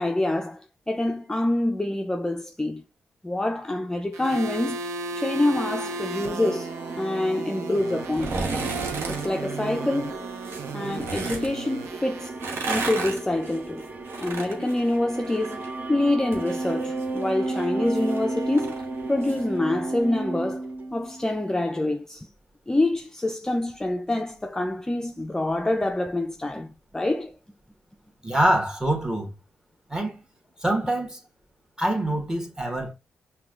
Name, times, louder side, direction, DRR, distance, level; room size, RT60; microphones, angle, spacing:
voice 1, 0.0-2.8 3.2-8.4 9.1-10.3 10.7-12.4 12.7-13.9 14.2-18.8 19.1-20.7 20.9-22.3 22.7-27.4, left 1 dB, 15° left, 0.4 m, -26 dB
sound 1, 4.1-12.3, right 3 dB, 85° right, 0.5 m, -35 dB
sound 2, 5.1-21.5, right 2 dB, 40° right, 0.8 m, -34 dB
sound 3, 8.1-9.3 10.4-11.5 12.2-15.7 16.0-19.4 19.8-19.9, right 3 dB, 65° right, 0.9 m, -33 dB
voice 2, 28.2-29.3 29.9-30.2 30.6-31.2 31.8-32.9, right 1 dB, 15° right, 1.3 m, -25 dB
5.7 x 2.2 x 2.4 m
supercardioid pair, 50°, 5 cm